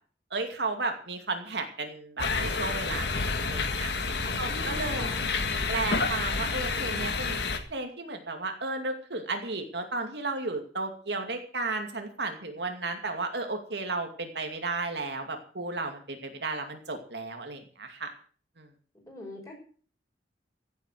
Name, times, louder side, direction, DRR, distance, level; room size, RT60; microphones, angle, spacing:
voice 1, 0.3-3.9 4.4-5.1 5.7-7.4 7.7-18.1 18.6-18.7, right 3 dB, 70° right, 5 dB, 2.5 m, -34 dB
sound 1, 2.2-7.6, left 4 dB, 65° left, 1.9 m, -29 dB
voice 2, 4.2-5.3 19.0-19.5, left 1 dB, 20° left, 0 dB, 5.8 m, -43 dB
15.5 x 8.2 x 7.7 m, 0.43 s
head